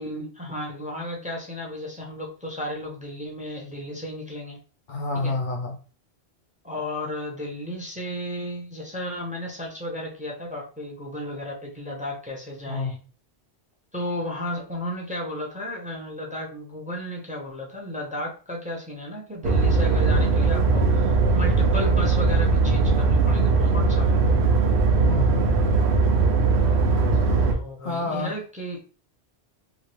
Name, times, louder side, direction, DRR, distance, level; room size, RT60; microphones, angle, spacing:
voice 1, 0.0-4.6 5.1-5.3 6.6-13.0 13.9-24.2 27.5-28.8, left 1 dB, 10° right, -1 dB, 0.6 m, -33 dB
voice 2, 4.9-5.8 12.7-13.0 25.0-25.5 27.1-27.5 27.8-28.4, left 2 dB, 60° left, 2 dB, 0.6 m, -29 dB
sound 1, 19.4-27.5, right 4 dB, 80° right, 0.9 m, -20 dB
3.0 x 2.5 x 2.9 m, 0.37 s
omnidirectional pair, 1.1 m